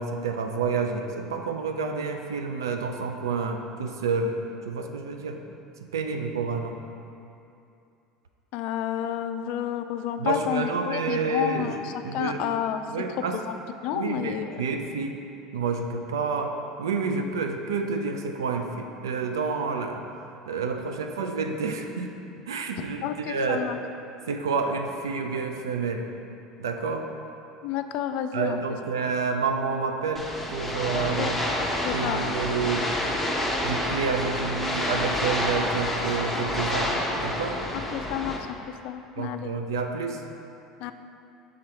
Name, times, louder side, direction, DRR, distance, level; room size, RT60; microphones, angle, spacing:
voice 1, 0.0-4.4 4.7-5.4 5.9-6.8 10.2-11.8 12.0-12.5 12.9-13.4 13.9-15.2 15.5-20.0 20.5-22.1 22.5-23.7 24.3-26.1 26.6-27.1 28.3-31.4 31.9-32.9 33.6-37.6 39.2-40.2, right 4 dB, 85° right, 4 dB, 0.4 m, -29 dB
voice 2, 8.5-11.8 12.1-12.8 13.3-13.5 13.8-14.5 23.0-23.8 27.6-28.6 30.9-31.3 31.8-32.4 37.9-38.4 38.8-39.5 40.8-40.9, left 10 dB, 60° left, 9 dB, 0.3 m, -30 dB
sound 1, 30.1-38.4, left 1 dB, 5° left, 0.8 m, -28 dB
6.1 x 3.7 x 4.4 m, 2.7 s
hypercardioid pair, 75°, 2 cm